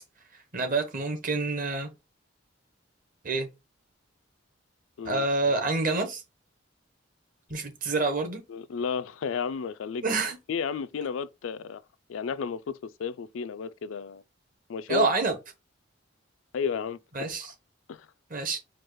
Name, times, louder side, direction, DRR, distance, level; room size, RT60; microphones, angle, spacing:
voice 1, 0.5-1.9 3.2-3.5 5.0-6.2 7.5-8.4 10.0-10.4 14.9-15.3 17.2-17.5 18.3-18.6, right 3 dB, 45° right, 1.1 m, -27 dB
voice 2, 8.5-10.0 10.5-11.8 12.1-14.2 14.7-15.1 16.5-17.0 17.4-17.5 17.9-18.1, left 6 dB, 80° left, 0.4 m, -32 dB
4.5 x 2.3 x 4.6 m
head